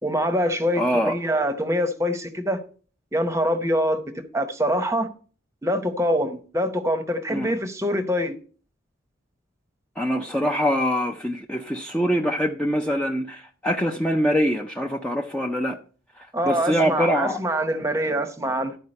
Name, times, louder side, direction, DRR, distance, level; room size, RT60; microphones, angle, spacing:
voice 1, 0.0-2.6 3.1-5.1 5.6-8.4 16.3-18.8, equal, 15° right, 0.8 m, -24 dB
voice 2, 0.8-1.1 7.3-7.5 10.0-15.8 16.2-17.4, equal, 5° left, 0.4 m, -24 dB
12.0 x 4.7 x 4.2 m
head